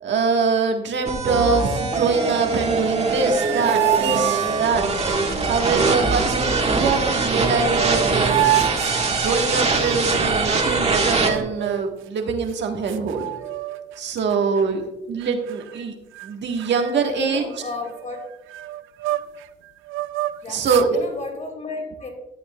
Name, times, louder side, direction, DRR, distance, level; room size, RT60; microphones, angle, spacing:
voice 1, 0.0-4.8 5.5-8.5 9.1-13.3 14.0-15.9 16.2-17.5 20.5-21.0, right 4 dB, 65° right, 3 dB, 1.5 m, -23 dB
sound 1, 1.1-11.3, right 3 dB, 30° right, 1.6 m, -22 dB
sound 2, 3.0-5.0 7.2-7.3 7.6-9.8 11.1-12.0 12.5-12.6 12.9-14.0 14.3-14.6 15.2-15.8 16.1-16.3 16.6-19.5 19.9-20.9, right 14 dB, 85° right, 0.4 m, -27 dB
sound 3, 6.0-11.5, right 2 dB, 15° right, 0.8 m, -36 dB
voice 2, 14.3-14.7 17.0-18.3 20.4-22.1, left 3 dB, 35° left, 2 dB, 2.9 m, -33 dB
13.5 x 7.8 x 2.3 m, 1.0 s
cardioid pair, 90°, 20 cm